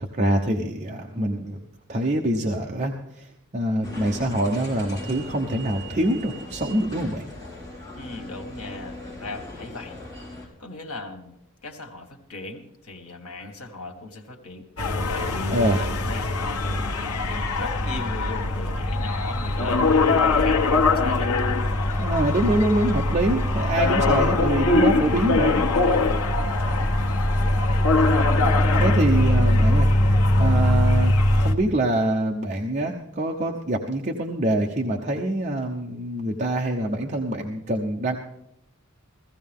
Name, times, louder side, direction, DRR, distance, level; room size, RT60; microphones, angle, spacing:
voice 1, 0.0-1.6 1.9-3.3 3.5-7.2 15.5-15.8 22.0-25.6 28.7-38.2, right 1 dB, 35° right, 1 dB, 0.9 m, -25 dB
sound 1, 3.8-10.5, left 1 dB, 15° left, 4.4 m, -39 dB
voice 2, 7.9-9.9 10.6-11.4 11.6-14.7 15.1-21.3 28.8-29.2, left 2 dB, 75° left, 4 dB, 2.0 m, -37 dB
sound 2, 14.8-31.5, left 2 dB, 90° left, 1.1 m, -21 dB
16.0 x 15.0 x 3.7 m, 0.80 s
head